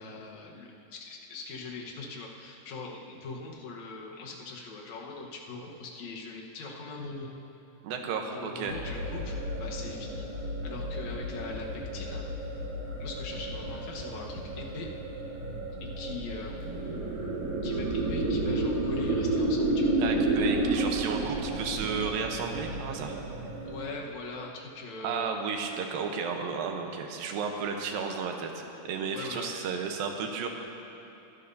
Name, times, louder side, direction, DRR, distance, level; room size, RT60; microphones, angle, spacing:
voice 1, 0.0-7.3 8.3-10.2 10.6-12.2 13.0-14.9 15.8-16.6 17.6-19.9 23.7-25.3 29.1-29.5, left 3 dB, 60° left, -1 dB, 2.3 m, -41 dB
voice 2, 7.8-8.8 20.0-23.2 25.0-28.5 28.8-30.5, right 5 dB, 90° right, 3 dB, 2.7 m, -33 dB
sound 1, 8.7-23.9, right 2 dB, 60° right, 3.1 m, -31 dB
22.5 x 11.5 x 2.7 m, 3.0 s
omnidirectional pair, 4.0 m